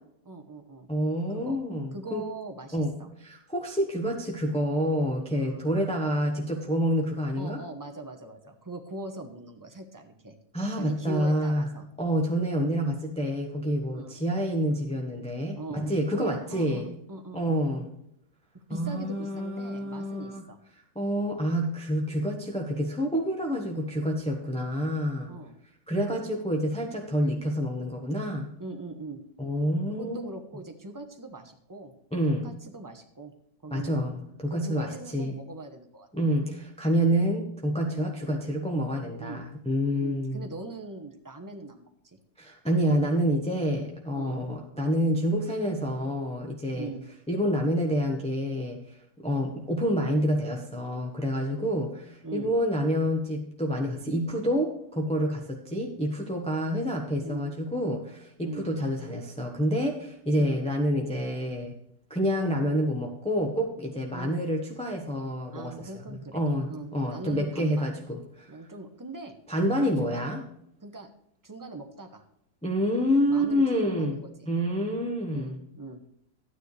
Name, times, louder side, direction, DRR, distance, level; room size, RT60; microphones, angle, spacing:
voice 1, 0.2-0.9 1.3-1.6 1.9-3.1 5.3-5.7 7.4-10.4 10.8-11.9 13.9-14.2 15.6-17.6 18.5-20.6 25.3-25.6 28.6-29.2 29.9-31.9 32.3-33.3 33.6-34.0 34.5-36.1 37.8-38.1 39.2-39.4 40.0-42.2 44.1-44.4 46.7-47.0 52.2-52.5 57.2-57.5 58.4-58.7 60.3-60.6 64.1-64.4 65.5-67.9 68.5-69.4 69.8-70.3 70.8-71.1 71.4-72.2 73.3-74.3 75.3-76.0, right 2 dB, 15° right, 4 dB, 0.6 m, -41 dB
voice 2, 0.9-2.2 2.7-2.9 3.2-7.6 10.5-11.6 12.0-16.9 17.3-17.9 18.7-20.4 20.9-25.3 25.9-28.5 29.4-30.2 32.1-32.5 33.7-35.3 36.1-40.5 42.4-46.9 47.3-49.0 49.2-61.7 62.1-68.5 69.5-70.4 72.6-74.2 74.5-75.6, equal, 5° left, 0 dB, 0.9 m, -28 dB
12.5 x 9.5 x 3.3 m, 0.73 s
omnidirectional pair, 1.9 m